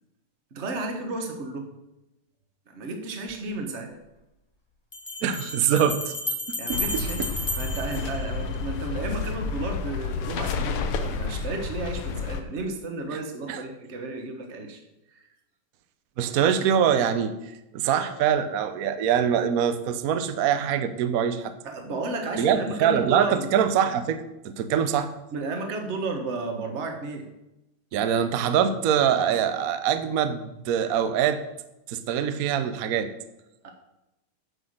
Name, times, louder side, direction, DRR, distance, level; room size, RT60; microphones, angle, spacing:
voice 1, 0.5-1.7 2.7-4.0 6.6-7.3 7.6-14.8 15.1-15.3 21.6-23.5 25.3-27.3 33.6-33.7, right 3 dB, 35° right, 4 dB, 1.3 m, -33 dB
Bell, 3.3-3.4 4.9-8.8, left 2 dB, 20° left, 0.7 m, -33 dB
voice 2, 5.2-6.1 6.7-6.8 13.5-13.6 16.2-21.5 22.3-25.1 27.9-31.4 31.9-33.1, right 8 dB, 65° right, 10 dB, 0.8 m, -24 dB
sound 1, 6.7-12.4, left 4 dB, 80° left, 1.7 m, -30 dB
9.6 x 6.0 x 6.5 m, 0.95 s
omnidirectional pair, 2.4 m